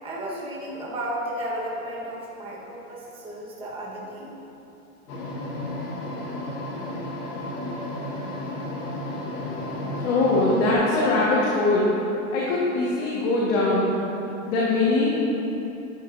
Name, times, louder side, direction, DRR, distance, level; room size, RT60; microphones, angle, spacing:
voice 1, 0.0-4.3, right 1 dB, 15° right, -5 dB, 1.3 m, -33 dB
sound 1, 5.1-10.7, left 1 dB, 85° left, 1.5 m, -32 dB
voice 2, 10.0-11.9 12.3-13.9 14.5-15.2, left 2 dB, 55° left, -6 dB, 1.6 m, -22 dB
11.0 x 8.2 x 2.7 m, 3.0 s
hypercardioid pair, 145°, 43 cm